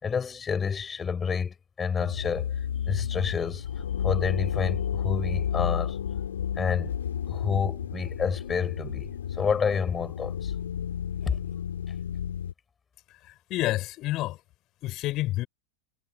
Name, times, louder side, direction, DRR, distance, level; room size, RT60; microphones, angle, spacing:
voice 1, 0.0-2.5 2.9-3.7 4.0-6.0 6.6-6.9 7.3-10.5 11.2-11.4, left 6 dB, 20° left, 4.9 m, -29 dB
sound 1, 2.0-12.5, left 9 dB, 65° left, 4.4 m, -32 dB
voice 2, 13.1-14.4 14.8-15.5, left 17 dB, 35° left, 7.5 m, -29 dB
figure-of-eight pair, 90°, 0 cm